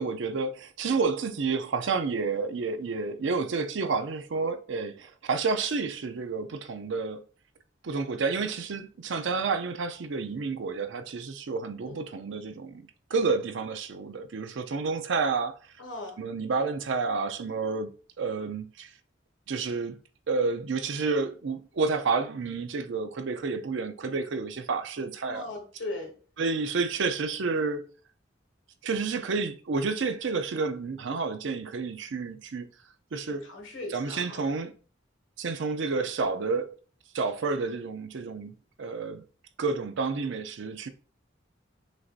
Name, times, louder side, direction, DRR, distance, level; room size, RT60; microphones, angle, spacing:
voice 1, 0.0-7.2 7.8-15.6 16.2-18.9 19.5-20.0 20.3-25.5 26.4-27.9 28.8-32.7 33.1-33.5 33.9-34.7 35.4-36.8 37.1-38.5 38.8-39.2 39.6-40.9, right 4 dB, 75° right, 0.5 m, -30 dB
voice 2, 15.8-16.2 25.2-26.2 33.3-34.5, left 2 dB, 85° left, 1.5 m, -39 dB
6.4 x 2.6 x 2.4 m
head